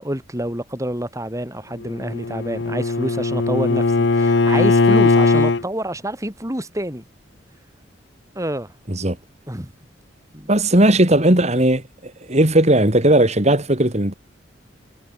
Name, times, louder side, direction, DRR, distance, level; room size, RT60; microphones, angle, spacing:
voice 1, 0.0-7.0 8.3-8.7 9.5-9.7 10.3-10.5, right 1 dB, 15° right, 6.2 m, -27 dB
Bowed string instrument, 1.8-5.6, left 3 dB, 65° left, 0.8 m, -18 dB
voice 2, 10.5-14.1, right 1 dB, 35° right, 3.4 m, -17 dB
head